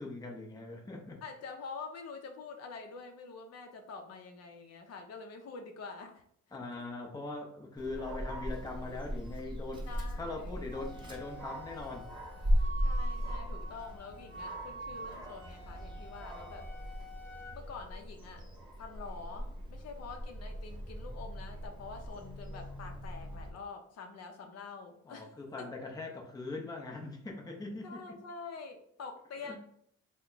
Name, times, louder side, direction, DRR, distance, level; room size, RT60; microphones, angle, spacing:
voice 1, 0.0-1.2 6.5-9.9 10.1-12.1 25.0-28.0 29.4-29.6, left 3 dB, 15° left, 1 dB, 0.6 m, -41 dB
voice 2, 1.2-6.2 6.8-6.9 9.9-10.7 12.8-16.7 17.5-18.4 18.8-25.7 27.8-29.6, left 4 dB, 55° left, 3 dB, 0.6 m, -46 dB
Dog, 7.8-23.5, equal, 15° right, 0.8 m, -38 dB
Wind instrument woodwind instrument, 10.7-17.5, right 2 dB, 35° right, 1.0 m, -47 dB
3.4 x 2.2 x 3.8 m, 0.68 s
cardioid pair, 115°, 30 cm